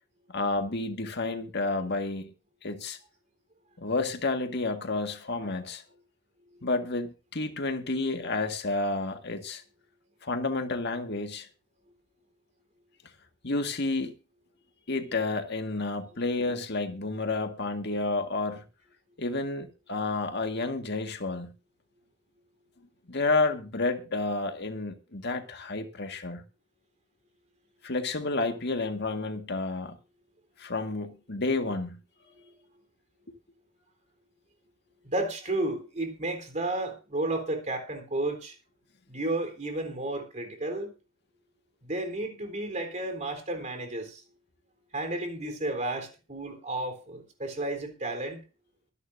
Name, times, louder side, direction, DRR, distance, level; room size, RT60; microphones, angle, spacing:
voice 1, 0.3-2.3 2.6-3.0 3.8-5.8 6.6-9.6 10.2-11.5 13.4-14.1 14.9-18.6 19.2-21.5 23.1-26.4 27.8-30.0 30.6-32.0 33.3-33.4, left 3 dB, 60° left, 1.9 m, -30 dB
voice 2, 35.0-38.5 39.1-40.9 41.8-44.2 44.9-48.4, right 2 dB, 40° right, 3.8 m, -32 dB
23.5 x 10.5 x 2.7 m
head